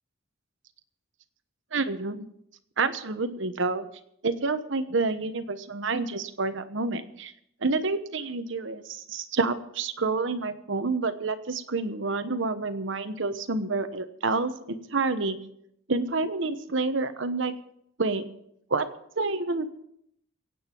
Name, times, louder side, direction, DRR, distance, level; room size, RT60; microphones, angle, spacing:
voice 1, 1.7-2.3 2.8-3.9 4.2-7.3 7.6-15.4 15.9-17.5 18.0-18.2 18.7-18.9 19.2-19.7, right 3 dB, 65° right, 10 dB, 1.1 m, -28 dB
24.0 x 8.9 x 4.5 m, 0.74 s
head